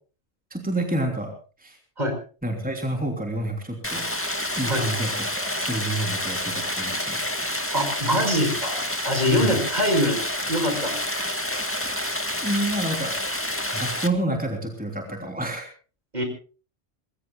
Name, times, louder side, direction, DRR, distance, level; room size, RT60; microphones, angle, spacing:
voice 1, 0.5-1.3 1.6-1.8 2.4-4.1 4.6-5.1 5.4-7.2 9.3-9.6 12.4-13.1 13.7-15.7, right 1 dB, 5° right, 2 dB, 3.3 m, -28 dB
Stream, 3.8-14.1, left 1 dB, 10° left, 2.0 m, -28 dB
voice 2, 7.7-8.8 9.0-10.2 10.5-11.0 16.1-16.2, equal, 40° right, 5 dB, 5.8 m, -23 dB
25.5 x 21.0 x 2.3 m, 0.38 s
omnidirectional pair, 1.1 m